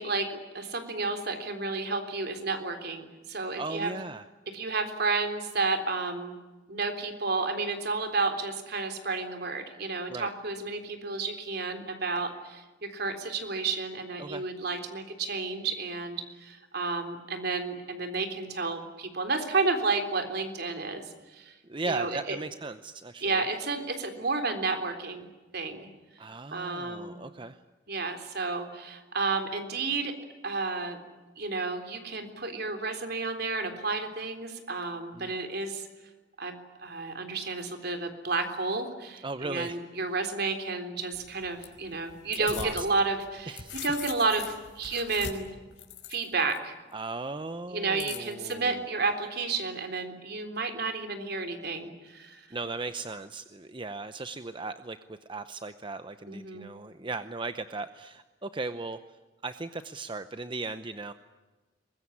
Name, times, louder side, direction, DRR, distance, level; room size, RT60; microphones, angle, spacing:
voice 1, 0.0-3.9 4.5-6.4 6.7-21.0 21.3-21.5 21.9-22.4 23.2-25.9 26.5-27.2 27.9-30.2 30.4-31.0 31.4-35.9 36.4-36.5 36.8-45.5 46.1-46.7 47.7-52.5 56.3-56.7, right 3 dB, 60° right, 6 dB, 3.7 m, -31 dB
voice 2, 3.6-4.3 10.1-10.3 14.2-14.4 21.7-23.4 26.2-27.6 35.1-35.3 39.2-39.8 42.3-42.9 43.5-43.8 46.9-48.9 52.5-59.0 59.4-61.1, right 3 dB, 25° right, 10 dB, 0.8 m, -37 dB
sound 1, 41.1-42.9 43.3-46.6 48.0-48.5, left 7 dB, 65° left, 5.0 m, -41 dB
23.5 x 21.5 x 9.8 m, 1.2 s
head